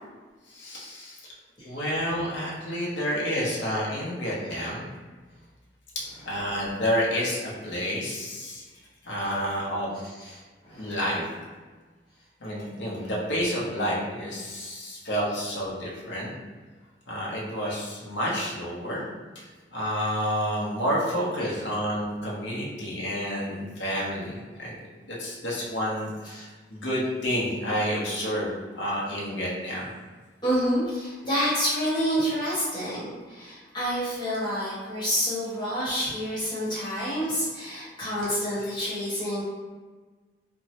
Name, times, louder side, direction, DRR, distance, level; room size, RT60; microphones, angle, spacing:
voice 1, 0.5-1.2 1.6-4.9 6.2-8.6 9.0-10.0 10.8-11.2 12.4-16.3 17.1-19.0 19.7-24.3 24.6-24.7 25.1-29.9, equal, 80° left, -5 dB, 0.7 m, -29 dB
voice 2, 10.2-11.0 13.0-13.1 21.4-21.5 26.2-26.4 30.4-39.4, equal, 25° left, -10 dB, 1.2 m, -28 dB
3.0 x 2.1 x 2.8 m, 1.4 s
head